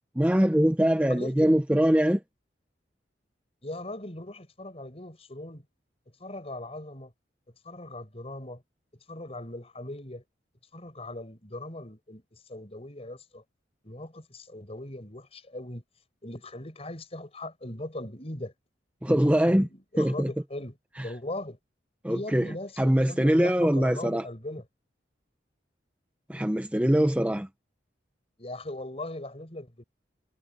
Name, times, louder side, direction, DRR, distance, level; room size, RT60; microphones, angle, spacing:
voice 1, 0.2-2.2 19.0-19.7 20.0-20.3 21.0-21.1 22.0-24.3 26.3-27.5, equal, 5° right, 0.7 m, -23 dB
voice 2, 1.1-1.6 3.6-5.6 6.2-7.1 7.7-8.6 9.1-10.2 10.7-13.4 13.8-15.8 16.2-18.5 19.1-20.8 21.0-21.6 22.1-24.6 28.4-29.8, left 1 dB, 35° left, 5.1 m, -39 dB
head